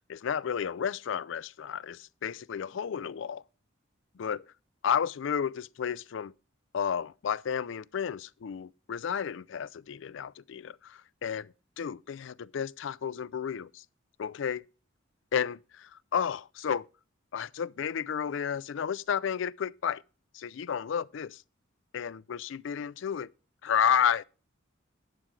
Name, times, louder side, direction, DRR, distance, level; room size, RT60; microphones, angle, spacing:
voice 1, 0.1-3.4 4.2-4.4 4.8-6.3 6.7-13.8 14.2-14.6 15.3-16.9 17.3-20.0 20.3-21.4 21.9-23.3 23.6-24.2, left 8 dB, 65° left, 0.4 m, -32 dB
11.0 x 10.0 x 3.2 m
head